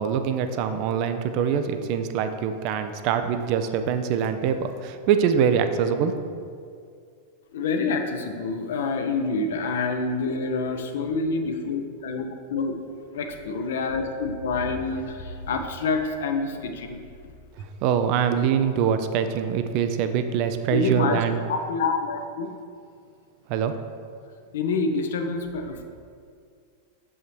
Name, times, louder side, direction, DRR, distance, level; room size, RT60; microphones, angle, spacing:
voice 1, 0.0-6.4 17.6-21.4 23.5-23.7, right 7 dB, 45° right, 8 dB, 0.4 m, -24 dB
voice 2, 7.5-12.8 13.1-17.3 20.7-21.2 21.5-22.5 24.5-25.8, left 4 dB, 60° left, 5 dB, 0.6 m, -27 dB
6.8 x 5.4 x 3.1 m, 2.3 s
figure-of-eight pair, 90°, 0 cm